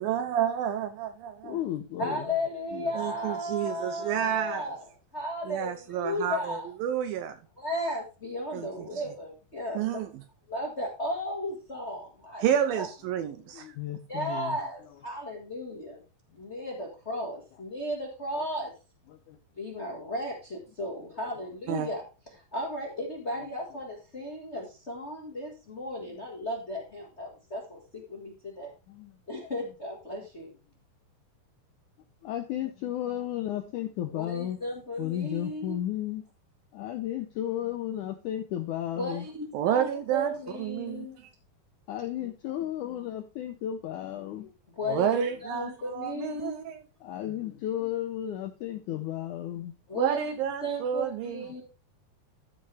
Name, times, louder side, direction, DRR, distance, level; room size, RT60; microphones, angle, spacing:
voice 1, 0.0-1.6 3.0-4.7 5.5-7.4 8.5-8.7 9.8-10.1 12.4-13.7 21.7-21.9 39.5-40.3 40.6-41.3 44.9-46.8 49.9-51.4, right 9 dB, 80° right, 2.3 m, -30 dB
voice 2, 1.4-2.3 2.7-2.9 13.5-14.6 18.4-18.5 19.1-19.4 23.4-23.5 26.0-26.1 28.9-29.2 32.2-34.6 35.0-36.2 36.7-39.3 41.9-44.5 47.0-50.0, left 12 dB, 80° left, 1.7 m, -34 dB
voice 3, 2.0-6.7 7.6-10.0 10.5-12.4 12.7-12.9 14.1-16.0 16.3-18.7 19.6-22.0 22.3-28.7 29.3-30.5 34.1-35.8 39.0-41.2 44.8-45.2 45.4-46.7 49.9-51.6, left 1 dB, 55° left, 0.7 m, -35 dB
13.5 x 5.4 x 3.4 m
omnidirectional pair, 4.5 m